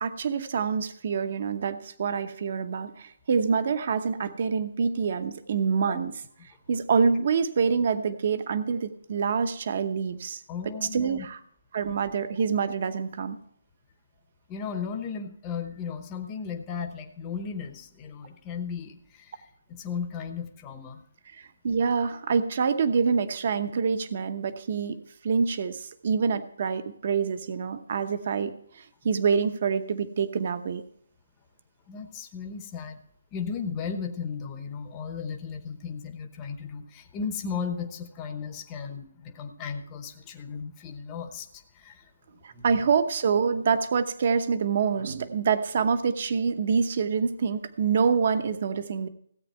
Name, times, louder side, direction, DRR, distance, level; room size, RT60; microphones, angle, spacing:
voice 1, 0.0-6.1 6.7-10.4 10.9-11.4 11.7-13.4 21.3-30.8 42.4-49.1, right 5 dB, 30° right, 10 dB, 0.9 m, -26 dB
voice 2, 10.5-11.2 14.5-19.4 19.7-21.0 31.9-33.0 33.3-42.1 42.5-42.8, left 6 dB, 10° left, 4 dB, 0.9 m, -35 dB
16.5 x 8.7 x 4.4 m, 0.66 s
hypercardioid pair, 180°, 0 cm